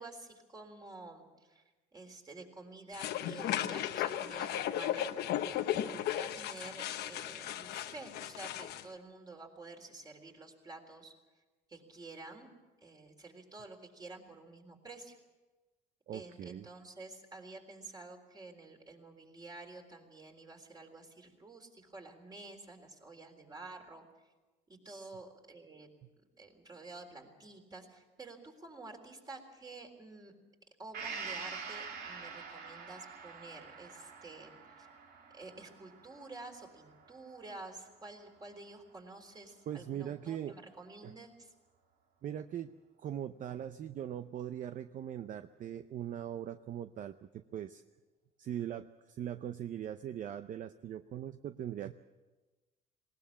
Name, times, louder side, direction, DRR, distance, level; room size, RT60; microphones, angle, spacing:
voice 1, 0.0-1.6 1.9-5.1 5.7-11.1 11.7-12.5 12.8-15.2 16.1-24.3 24.7-25.9 26.4-30.3 30.8-34.9 35.3-41.5, right 3 dB, 25° right, 3 dB, 3.8 m, -50 dB
sound 1, 2.9-8.8, left 11 dB, 75° left, 1.0 m, -36 dB
voice 2, 5.7-6.0 16.1-16.7 24.9-25.1 39.7-40.5 41.0-41.1 42.2-42.7 43.0-47.8 48.4-51.9, right 10 dB, 50° right, 11 dB, 0.6 m, -41 dB
Gong, 30.9-38.6 39.0-39.1, right 5 dB, 70° right, 2.9 m, -46 dB
20.0 x 18.5 x 7.4 m, 1.2 s
cardioid pair, 110°, 17 cm